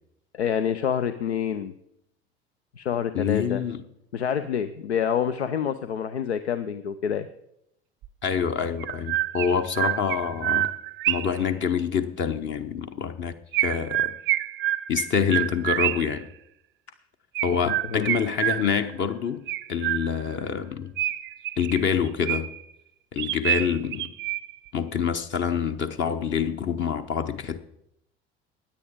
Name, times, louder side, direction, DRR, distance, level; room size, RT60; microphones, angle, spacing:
voice 1, 0.3-1.7 2.8-3.6 4.1-7.3 17.6-18.1, left 8 dB, 80° left, 0.6 m, -27 dB
voice 2, 3.1-3.8 8.2-10.7 11.1-14.1 14.9-16.3 17.4-19.4 19.7-20.9 21.6-22.5 23.1-24.1 24.7-27.6, left 7 dB, 35° left, 0.9 m, -26 dB
Chirp tweet, 8.0-8.1 8.8-11.4 13.5-16.2 17.3-18.9 19.5-20.3 21.0-22.7 23.2-24.7, right 14 dB, 35° right, 0.6 m, -28 dB
16.0 x 10.0 x 3.6 m
figure-of-eight pair, 65°, 32 cm